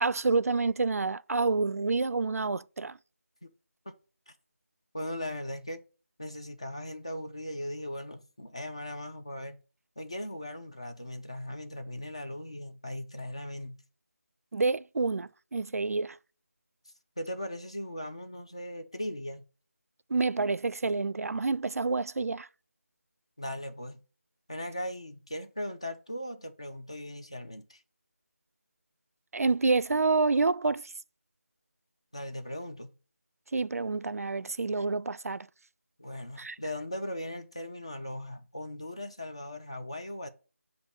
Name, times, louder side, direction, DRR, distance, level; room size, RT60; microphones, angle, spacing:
voice 1, 0.0-3.0 14.5-16.2 20.1-22.5 29.3-30.8 33.5-35.5 36.4-36.6, right 3 dB, 80° right, 0.3 m, -28 dB
voice 2, 4.9-5.8 6.2-9.6 10.0-13.8 17.2-19.4 23.4-24.0 24.5-27.8 32.1-32.9 36.0-40.3, left 1 dB, 25° left, 0.4 m, -38 dB
7.0 x 2.6 x 5.2 m
figure-of-eight pair, 175°, 8 cm